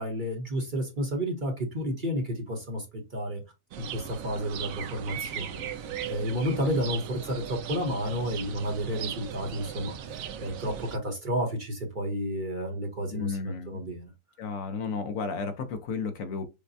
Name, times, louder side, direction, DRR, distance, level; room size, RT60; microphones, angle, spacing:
voice 1, 0.0-3.4 3.8-14.1, equal, 35° right, 1.0 m, -31 dB
sound 1, 3.7-11.0, right 8 dB, 65° right, 0.9 m, -37 dB
voice 2, 13.1-13.8 14.4-16.4, left 4 dB, 60° left, 1.1 m, -33 dB
6.6 x 2.2 x 2.6 m
omnidirectional pair, 1.8 m